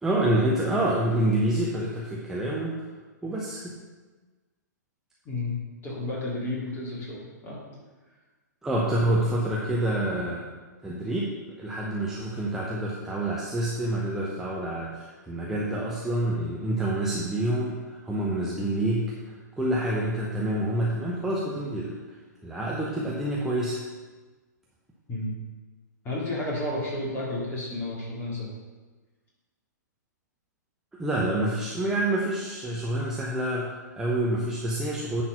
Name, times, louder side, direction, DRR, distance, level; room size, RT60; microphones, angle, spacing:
voice 1, 0.0-2.8 3.2-3.8 8.6-10.4 10.8-22.0 22.4-23.8 31.0-35.2, right 1 dB, 5° right, -5 dB, 0.9 m, -27 dB
voice 2, 5.8-7.6 25.1-25.3 26.0-28.5, left 2 dB, 20° left, -4 dB, 2.6 m, -31 dB
9.7 x 4.3 x 5.7 m, 1.3 s
figure-of-eight pair, 115°, 10 cm